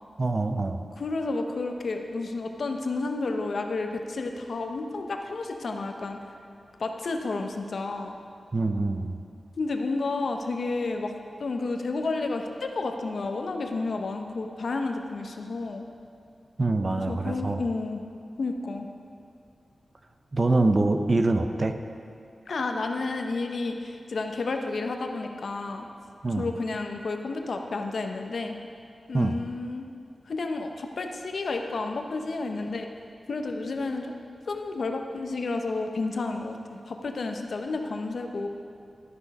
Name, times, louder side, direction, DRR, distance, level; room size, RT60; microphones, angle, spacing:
voice 1, 0.2-0.8 8.5-9.2 16.6-17.6 20.3-21.8 26.2-26.5 29.1-29.4, right 2 dB, 35° right, 7 dB, 0.5 m, -24 dB
voice 2, 1.0-6.2 6.8-8.2 9.6-11.1 11.4-15.9 16.9-18.0 18.4-18.9 22.5-25.9 26.4-28.6 29.1-29.8 30.3-32.9 33.3-34.1 34.5-38.5, left 3 dB, 65° left, 4 dB, 0.7 m, -31 dB
12.5 x 6.3 x 5.4 m, 2.4 s
wide cardioid pair, 125°, 0 cm